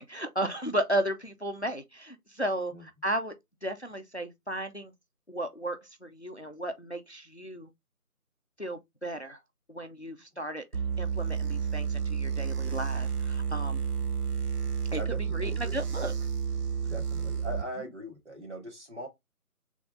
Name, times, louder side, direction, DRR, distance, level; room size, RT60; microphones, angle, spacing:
voice 1, 0.0-2.7 3.0-3.3 3.6-4.9 5.3-7.7 8.6-9.4 9.7-10.6 11.0-13.8 14.9-15.0 15.3-16.1, right 1 dB, 50° left, 0.5 m, -34 dB
sound 1, 10.7-17.6, right 6 dB, 85° right, 0.9 m, -31 dB
voice 2, 14.9-15.8 16.8-19.1, equal, 50° right, 1.6 m, -41 dB
3.6 x 3.4 x 3.7 m
figure-of-eight pair, 180°, 45 cm